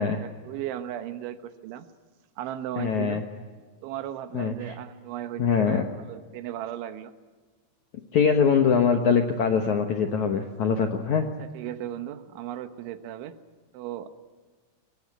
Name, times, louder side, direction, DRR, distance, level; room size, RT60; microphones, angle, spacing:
voice 1, 0.0-1.9 2.4-3.2 3.8-5.8 6.1-7.1 11.4-13.4 13.7-14.1, right 11 dB, 85° right, 10 dB, 3.6 m, -36 dB
voice 2, 2.8-3.2 4.3-4.8 5.4-5.9 8.1-11.3, left 6 dB, 70° left, 5 dB, 1.8 m, -23 dB
24.5 x 20.5 x 9.9 m, 1.4 s
omnidirectional pair, 5.3 m